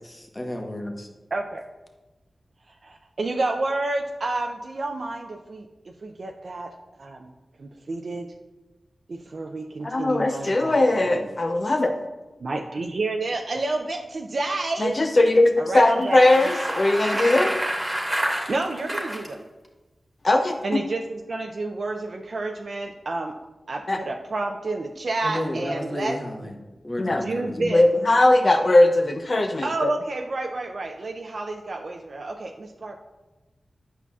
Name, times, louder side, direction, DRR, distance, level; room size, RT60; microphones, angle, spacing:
voice 1, 0.0-1.1 25.2-26.6 26.8-27.7, left 1 dB, 30° left, 2 dB, 1.0 m, -32 dB
voice 2, 1.3-1.6 2.8-5.7 6.0-6.7 7.0-7.3 7.6-8.3 9.1-10.8 11.1-11.4 12.4-15.0 15.6-16.4 18.5-19.4 20.6-23.3 23.7-26.2 27.2-27.9 29.6-33.0, right 2 dB, 70° right, 2 dB, 0.4 m, -29 dB
voice 3, 9.8-11.9 14.8-17.5 20.2-20.8 23.9-24.0 27.0-27.2 27.7-29.9, left 2 dB, 55° left, 5 dB, 0.4 m, -19 dB
Bicycle, 16.0-19.3, right 1 dB, 25° right, 1.2 m, -28 dB
8.3 x 5.5 x 2.3 m, 1.1 s
cardioid pair, 40°, 0 cm